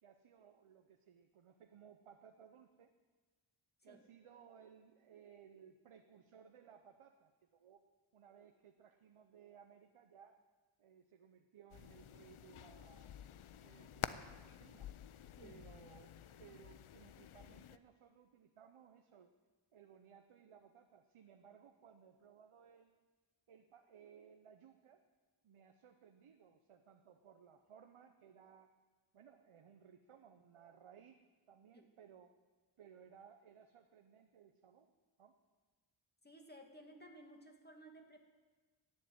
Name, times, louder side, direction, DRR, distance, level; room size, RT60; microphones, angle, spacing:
voice 1, 0.0-2.9 3.8-7.8 8.1-10.3 10.8-13.1 13.6-14.9 15.4-16.1 16.4-19.3 19.7-23.0 23.5-25.0 25.4-28.7 29.1-31.2 31.5-32.3 32.8-34.9 35.2-35.3, right 7 dB, 90° right, 6 dB, 0.9 m, -61 dB
sound 1, 11.7-17.8, left 10 dB, 80° left, 0.6 m, -49 dB
voice 2, 36.2-38.2, equal, 20° left, 2 dB, 2.4 m, -57 dB
14.0 x 7.6 x 9.4 m, 1.3 s
cardioid pair, 50°, 49 cm